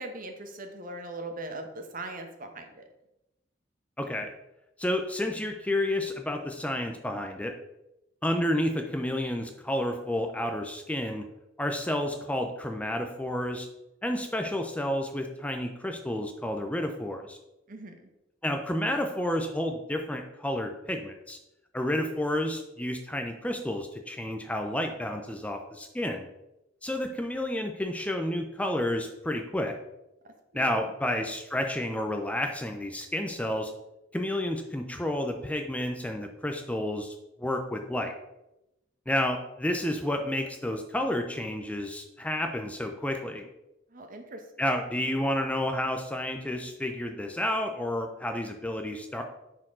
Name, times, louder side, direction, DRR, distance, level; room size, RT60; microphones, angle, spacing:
voice 1, 0.0-2.8 17.7-18.1 30.2-30.8 43.9-44.4, right 2 dB, 45° right, 5 dB, 1.1 m, -40 dB
voice 2, 4.0-4.3 4.8-7.6 8.2-11.2 11.6-13.7 14.0-17.4 18.4-21.4 21.7-26.3 26.8-29.8 30.5-33.7 34.1-38.1 39.1-43.5 44.6-49.2, left 1 dB, 5° left, 4 dB, 0.5 m, -30 dB
10.0 x 4.6 x 3.7 m, 0.92 s
head